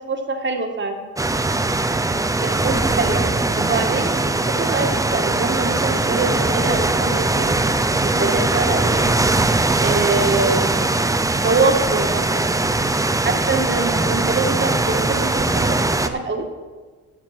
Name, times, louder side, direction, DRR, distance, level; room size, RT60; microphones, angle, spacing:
voice 1, 0.4-1.0 2.4-3.2 3.6-7.5 8.0-9.1 9.8-11.0 11.3-12.6 13.2-16.5, right 3 dB, 40° right, 4 dB, 1.9 m, -24 dB
sound 1, 1.2-16.1, right 2 dB, 10° right, 0.7 m, -20 dB
12.0 x 7.3 x 6.0 m, 1.4 s
cardioid pair, 90°, 30 cm